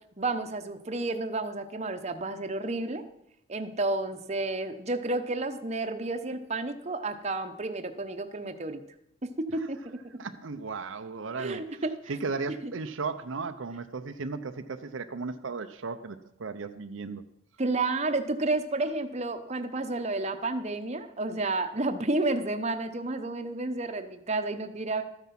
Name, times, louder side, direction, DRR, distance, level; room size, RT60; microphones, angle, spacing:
voice 1, 0.2-3.0 3.5-8.8 9.2-10.0 11.4-12.1 12.6-12.7 17.6-25.0, right 2 dB, 35° right, 7 dB, 0.9 m, -31 dB
voice 2, 10.2-11.6 12.1-17.2, right 4 dB, 70° right, 8 dB, 0.6 m, -35 dB
13.0 x 9.3 x 5.9 m, 0.77 s
head